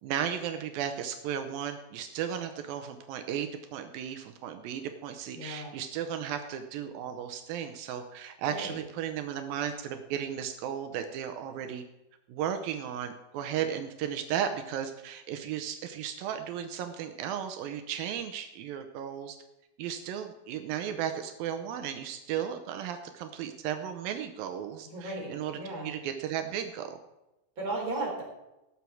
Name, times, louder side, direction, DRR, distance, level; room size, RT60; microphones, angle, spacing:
voice 1, 0.0-11.8 12.3-19.4 19.8-27.0, right 9 dB, 85° right, 7 dB, 2.6 m, -35 dB
voice 2, 5.3-5.7 8.5-8.8 24.8-25.9 27.6-28.4, right 2 dB, 25° right, -1 dB, 3.9 m, -36 dB
19.0 x 7.1 x 4.6 m, 0.96 s
omnidirectional pair, 4.2 m